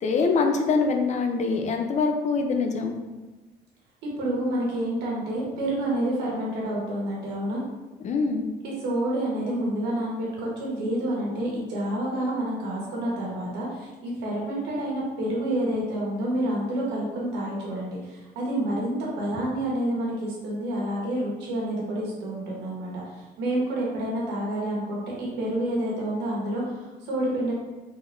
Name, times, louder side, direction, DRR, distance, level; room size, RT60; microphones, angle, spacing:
voice 1, 0.0-3.0 8.0-8.5, left 4 dB, 45° left, 4 dB, 0.5 m, -24 dB
voice 2, 4.2-7.6 8.6-27.5, right 1 dB, 90° right, -4 dB, 1.3 m, -28 dB
3.8 x 3.4 x 2.6 m, 1.2 s
cardioid pair, 110°, 17 cm